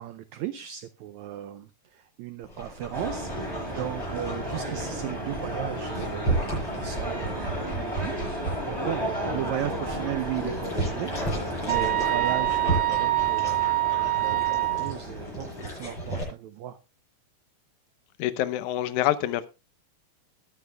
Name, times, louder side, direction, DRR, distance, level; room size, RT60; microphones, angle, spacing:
voice 1, 0.0-6.4 6.7-8.2 8.6-16.8, right 12 dB, 85° right, 1.6 m, -36 dB
Dog, 2.4-16.2, right 2 dB, 30° left, 8.0 m, -35 dB
sound 1, 2.9-16.2, equal, 10° left, 5.3 m, -33 dB
sound 2, 11.7-14.9, right 18 dB, 65° right, 1.9 m, -25 dB
voice 2, 18.2-19.5, left 13 dB, 75° left, 1.9 m, -26 dB
20.5 x 9.2 x 2.2 m
omnidirectional pair, 4.1 m